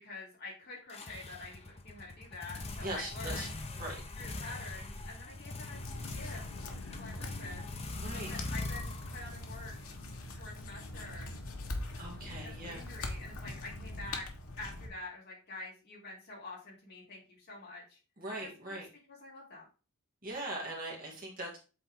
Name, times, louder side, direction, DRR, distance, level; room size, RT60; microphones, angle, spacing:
voice 1, 0.0-3.5 4.1-5.8 6.1-7.6 8.2-9.7 10.4-11.3 12.3-14.2 14.6-18.0 18.4-18.8 19.1-19.7, left 3 dB, 45° left, -5 dB, 3.4 m, -47 dB
sound 1, 0.9-10.7, left 2 dB, 30° left, 0.7 m, -42 dB
voice 2, 2.8-3.5 3.8-4.0 8.0-8.3 12.0-12.8 18.2-18.9 20.2-21.6, right 1 dB, 40° right, -2 dB, 2.1 m, -40 dB
sound 2, 5.7-14.9, left 2 dB, 70° left, 1.2 m, -43 dB
8.1 x 3.8 x 3.7 m, 0.34 s
head